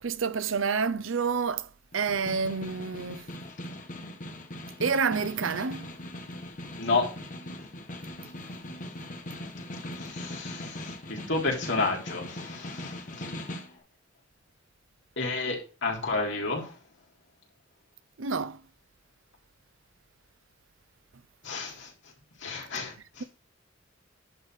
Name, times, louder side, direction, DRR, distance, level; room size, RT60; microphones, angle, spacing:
voice 1, 0.0-1.7 1.9-3.3 4.8-5.9 18.2-18.6, right 5 dB, 85° right, 0.7 m, -28 dB
Snare drum, 1.9-13.8, left 1 dB, 45° left, 1.3 m, -40 dB
voice 2, 9.9-13.5 15.2-16.8 21.4-21.9 22.4-23.2, left 3 dB, 65° left, 3.6 m, -31 dB
11.0 x 4.2 x 6.5 m
head